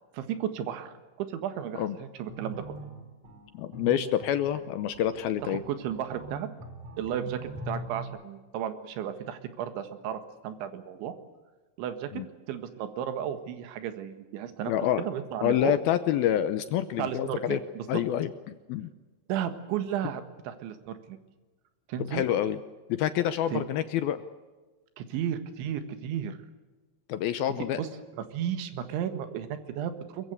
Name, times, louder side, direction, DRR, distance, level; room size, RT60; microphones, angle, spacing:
voice 1, 0.1-2.6 5.4-6.5 7.0-11.2 11.8-12.1 12.5-14.7 15.0-15.8 17.0-18.0 19.3-21.2 21.9-22.2 23.5-23.6 25.0-26.4 27.8-27.9 28.1-30.3, right 9 dB, 85° right, 9 dB, 4.0 m, -34 dB
sound 1, 2.3-8.0, right 1 dB, 40° right, 5.4 m, -42 dB
voice 2, 3.5-5.6 12.1-12.3 14.7-15.0 15.4-17.6 17.9-18.9 22.1-22.6 22.9-24.2 27.1-27.8, left 11 dB, 75° left, 12 dB, 2.3 m, -27 dB
22.5 x 22.5 x 8.2 m, 1.3 s
omnidirectional pair, 5.2 m